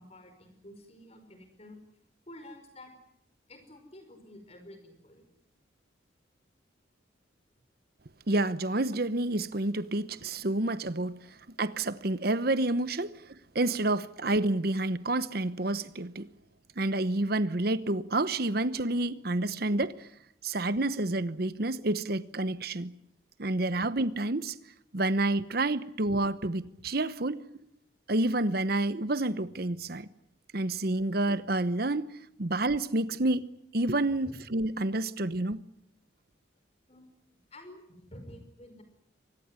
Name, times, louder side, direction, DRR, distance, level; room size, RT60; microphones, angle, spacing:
voice 1, 0.0-1.8 2.3-2.9 3.5-5.3 34.2-34.4 36.9-37.1 37.5-38.8, left 1 dB, 30° left, 5.3 m, -50 dB
voice 2, 8.3-11.2 11.6-13.1 13.5-16.3 16.8-20.1 20.4-22.9 23.4-24.6 24.9-27.4 28.1-30.1 30.5-32.1 32.4-33.5 33.7-35.6, right 2 dB, 50° right, 1.0 m, -29 dB
24.0 x 19.5 x 9.7 m
head